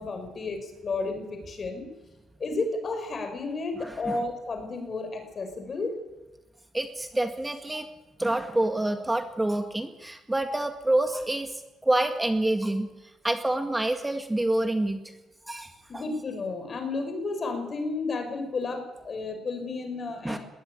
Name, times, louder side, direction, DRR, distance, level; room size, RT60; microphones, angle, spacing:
voice 1, 0.0-1.8 2.4-5.9 15.9-20.4, left 3 dB, 40° left, 6 dB, 6.3 m, -32 dB
voice 2, 3.7-4.2 6.7-7.9 8.2-12.9 13.2-15.0 15.5-16.0 20.2-20.4, right 1 dB, 10° right, 6 dB, 2.0 m, -27 dB
20.5 x 18.0 x 9.9 m, 1.0 s
cardioid pair, 90°, 0 cm